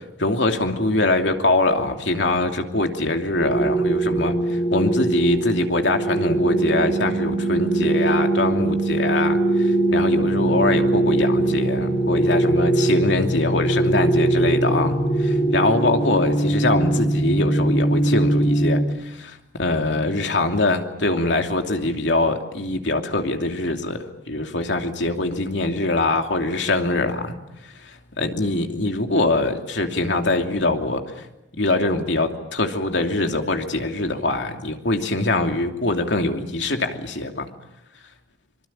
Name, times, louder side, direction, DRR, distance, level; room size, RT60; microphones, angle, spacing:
voice 1, 0.2-4.4 4.7-14.9 15.2-18.8 19.2-27.4 28.2-31.0 31.6-37.5, left 2 dB, 85° left, 5 dB, 2.9 m, -23 dB
sound 1, 3.4-18.8, right 2 dB, 40° left, 4.0 m, -21 dB
25.0 x 24.5 x 8.9 m, 0.89 s
head